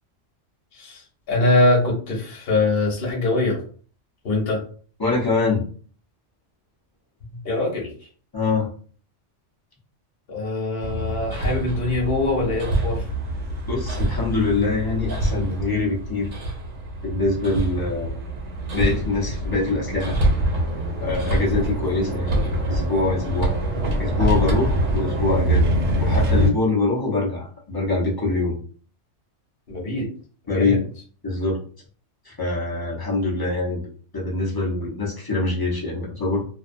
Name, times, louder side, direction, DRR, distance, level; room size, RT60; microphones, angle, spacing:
voice 1, 0.7-3.6 4.2-4.6 7.3-7.9 10.3-13.1 25.9-26.1 29.7-30.1 30.5-30.8, left 2 dB, 55° left, -2 dB, 1.0 m, -23 dB
voice 2, 5.0-5.6 8.3-8.7 13.7-16.3 17.0-18.2 18.7-20.2 21.0-23.5 24.0-28.6 30.5-30.9 31.2-31.6 32.2-33.8 34.1-36.4, left 3 dB, 25° left, -4 dB, 0.6 m, -24 dB
Hammer, 10.8-26.5, right 1 dB, 75° right, 1.1 m, -25 dB
2.6 x 2.2 x 2.5 m, 0.43 s
omnidirectional pair, 1.2 m